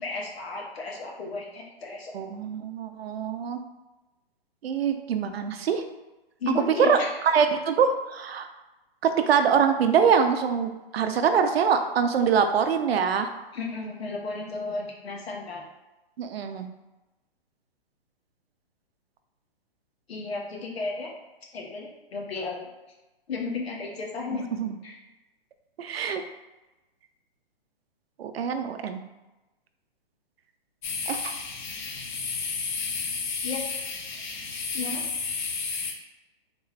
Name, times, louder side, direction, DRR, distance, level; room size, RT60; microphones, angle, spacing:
voice 1, 0.0-2.1 6.4-7.1 13.5-15.6 20.1-21.1 21.5-22.6 23.3-24.4 24.8-25.0 33.4-33.6 34.7-35.0, left 3 dB, 80° left, -1 dB, 1.2 m, -33 dB
voice 2, 2.1-3.6 4.6-5.8 6.8-7.0 7.2-8.5 9.0-13.3 16.2-16.7 24.3-24.8 25.8-26.2 28.2-29.0 31.0-31.3, right 7 dB, 80° right, 8 dB, 0.5 m, -24 dB
sound 1, 30.8-35.9, left 5 dB, 50° left, 0.6 m, -32 dB
3.7 x 2.5 x 3.1 m, 1.0 s
hypercardioid pair, 170°, 30 cm